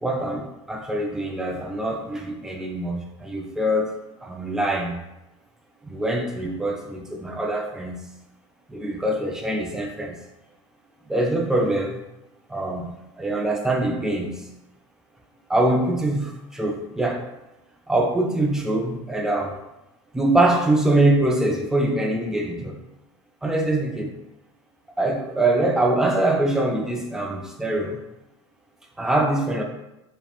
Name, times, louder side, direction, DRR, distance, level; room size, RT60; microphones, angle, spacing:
voice 1, 0.0-3.9 4.2-5.0 5.8-8.1 8.7-10.2 11.1-12.0 12.5-14.4 15.5-17.3 17.9-19.6 20.1-22.8 23.4-24.1 25.0-28.0 29.0-29.6, right 1 dB, 5° right, 1 dB, 0.3 m, -23 dB
2.9 x 2.1 x 2.3 m, 0.93 s
hypercardioid pair, 90°, 15 cm